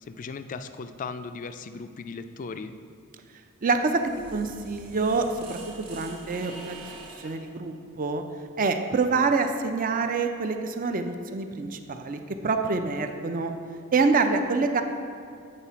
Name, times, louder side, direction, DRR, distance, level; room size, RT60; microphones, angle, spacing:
voice 1, 0.1-2.7, left 4 dB, 35° left, 10 dB, 0.3 m, -37 dB
voice 2, 3.6-4.0 4.3-6.9 7.2-8.2 8.6-13.5 13.9-14.8, right 4 dB, 40° right, 6 dB, 0.5 m, -26 dB
sound 1, 3.7-7.5, right 3 dB, 80° right, 1.2 m, -45 dB
8.8 x 4.0 x 5.7 m, 2.4 s
head